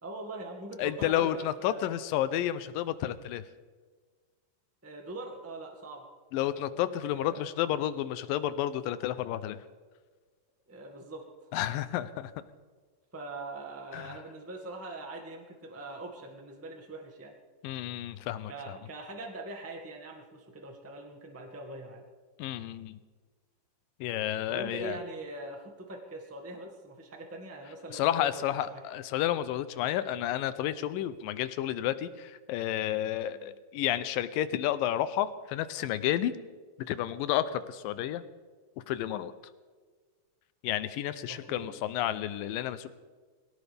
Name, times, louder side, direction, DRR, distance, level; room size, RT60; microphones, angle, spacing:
voice 1, 0.0-2.0 4.8-6.0 6.5-7.4 10.7-11.5 13.1-17.3 18.5-22.0 24.5-28.8 41.3-41.7, right 2 dB, 10° right, 1 dB, 0.7 m, -42 dB
voice 2, 0.8-3.4 6.3-9.6 11.5-12.3 13.9-14.2 17.6-18.8 22.4-23.0 24.0-25.0 27.9-36.3 36.9-38.2 38.9-39.3 40.6-42.9, left 12 dB, 80° left, 13 dB, 2.4 m, -31 dB
22.5 x 17.5 x 3.5 m, 1.4 s
omnidirectional pair, 4.1 m